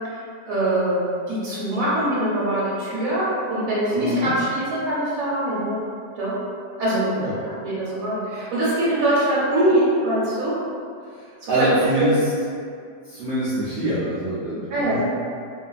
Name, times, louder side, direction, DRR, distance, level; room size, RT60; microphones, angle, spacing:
voice 1, 0.5-5.9 6.2-6.3 6.8-7.1 7.5-10.5 11.4-11.7 12.0-12.1 14.7-15.0, right 1 dB, 60° right, -9 dB, 1.1 m, -23 dB
voice 2, 3.9-4.3 7.2-7.3 11.5-12.2 13.0-15.0, right 1 dB, 80° right, -12 dB, 0.6 m, -24 dB
2.6 x 2.5 x 2.3 m, 2.3 s
omnidirectional pair, 1.8 m